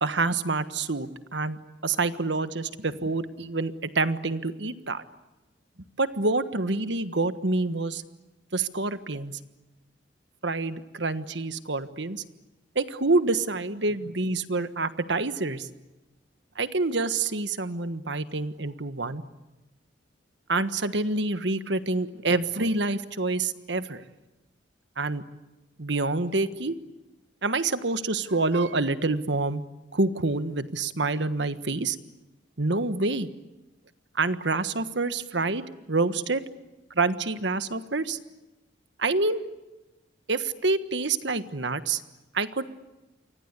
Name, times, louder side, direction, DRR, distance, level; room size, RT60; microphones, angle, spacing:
voice 1, 0.0-1.6 1.8-5.0 6.0-8.0 8.5-9.4 10.4-12.2 12.7-15.7 16.6-19.2 20.5-24.0 25.0-25.2 25.8-26.7 27.4-29.6 29.9-32.0 32.6-33.3 34.1-35.6 35.9-36.4 36.9-38.2 39.0-39.4 40.3-42.0 42.3-42.7, right 3 dB, 70° right, 12 dB, 1.4 m, -27 dB
29.0 x 24.5 x 8.3 m, 1.0 s
head